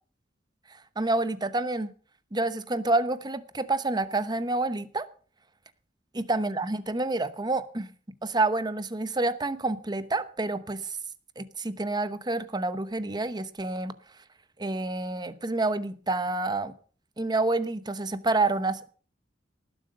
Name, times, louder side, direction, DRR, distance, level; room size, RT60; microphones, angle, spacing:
voice 1, 1.0-1.9 2.3-5.1 6.1-7.9 8.2-10.8 11.4-13.9 14.6-16.7 17.2-18.9, right 2 dB, 25° right, 0.9 m, -28 dB
19.0 x 7.7 x 6.6 m
head